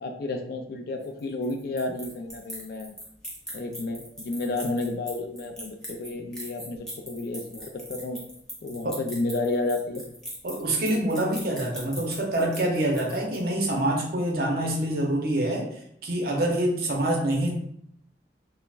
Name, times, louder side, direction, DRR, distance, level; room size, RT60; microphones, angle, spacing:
voice 1, 0.0-2.9 3.5-8.2 8.6-10.0, left 2 dB, 55° left, 5 dB, 0.3 m, -31 dB
sound 1, 1.0-13.6, equal, 5° left, 0.5 m, -40 dB
voice 2, 10.4-17.5, right 1 dB, 55° right, 1 dB, 0.6 m, -26 dB
2.3 x 2.0 x 3.2 m, 0.72 s
head